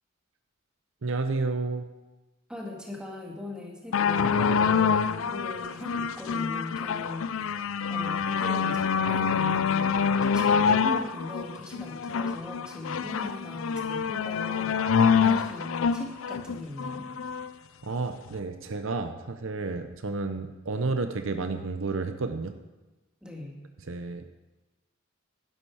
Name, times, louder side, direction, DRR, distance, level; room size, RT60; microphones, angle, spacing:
voice 1, 1.0-1.9 17.8-22.5 23.9-24.2, right 3 dB, 65° right, 7 dB, 0.7 m, -31 dB
voice 2, 2.5-17.1 23.2-23.6, left 2 dB, 5° right, -1 dB, 2.0 m, -39 dB
sound 1, 3.9-17.5 18.3-18.4, left 6 dB, 70° left, 0.5 m, -26 dB
11.5 x 11.0 x 4.8 m, 1.1 s
head